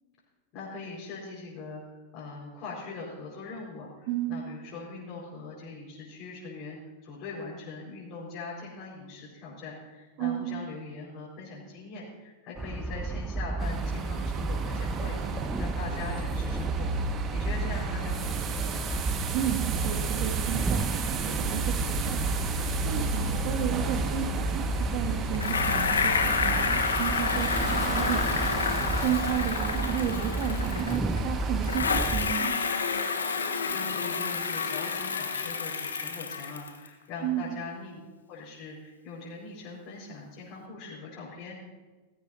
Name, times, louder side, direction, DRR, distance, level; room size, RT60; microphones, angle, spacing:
voice 1, 0.5-18.9 33.4-38.0 38.3-41.6, left 3 dB, 50° left, -6 dB, 5.0 m, -41 dB
voice 2, 4.1-4.4 10.2-10.5 19.3-22.2 22.8-24.6 24.9-28.2 29.0-32.5 37.2-37.6, right 10 dB, 55° right, 4 dB, 2.2 m, -32 dB
sound 1, 12.6-32.3, right 2 dB, 10° right, 0.5 m, -32 dB
sound 2, 13.6-31.8, right 4 dB, 35° right, 1.7 m, -33 dB
Bicycle, 25.3-31.2 31.6-36.9, left 5 dB, 85° left, 1.3 m, -29 dB
17.5 x 15.5 x 2.8 m, 1.3 s
hypercardioid pair, 95°, 0 cm